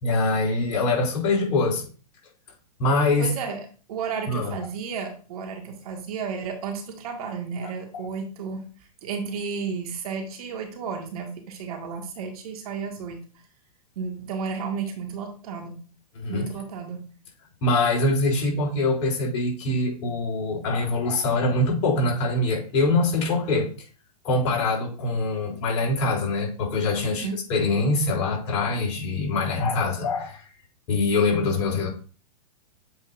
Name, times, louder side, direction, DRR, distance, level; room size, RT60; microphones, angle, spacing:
voice 1, 0.0-1.9 2.8-3.3 4.3-4.5 7.9-8.1 16.1-16.5 17.6-23.7 24.2-30.5 30.9-31.9, left 2 dB, 45° left, -2 dB, 3.6 m, -24 dB
voice 2, 3.2-3.6 3.9-8.6 9.0-13.2 14.0-15.8 16.3-17.0 27.1-27.4, right 5 dB, 65° right, 3 dB, 2.0 m, -32 dB
7.8 x 5.4 x 2.6 m, 0.38 s
hypercardioid pair, 120°, 21 cm